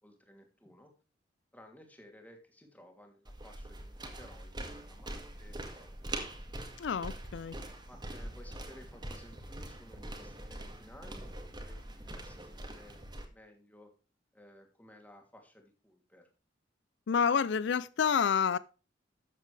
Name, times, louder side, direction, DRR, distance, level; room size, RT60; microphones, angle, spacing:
voice 1, 0.0-0.9 1.5-6.1 7.9-13.0 13.3-13.9 14.3-16.2, left 1 dB, 10° left, 2.8 m, -57 dB
sound 1, 3.2-13.2, right 1 dB, 25° right, 2.1 m, -43 dB
voice 2, 6.8-7.6 17.1-18.6, left 6 dB, 70° left, 0.4 m, -28 dB
13.5 x 8.3 x 3.3 m
head